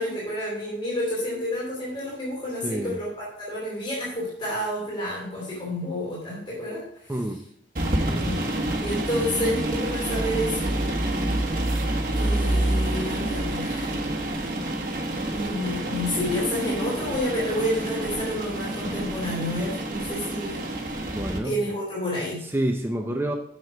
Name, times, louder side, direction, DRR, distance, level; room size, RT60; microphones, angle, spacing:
voice 1, 0.0-7.1 8.1-8.4 8.8-11.3 12.1-14.0 15.3-20.6 21.4-22.4, left 1 dB, 25° left, -6 dB, 2.8 m, -30 dB
voice 2, 2.6-3.0 7.1-7.4 21.1-21.6 22.4-23.3, right 1 dB, 10° right, 3 dB, 0.6 m, -27 dB
sound 1, 7.8-21.4, right 1 dB, 45° right, 1.3 m, -28 dB
7.3 x 6.3 x 4.8 m, 0.70 s
head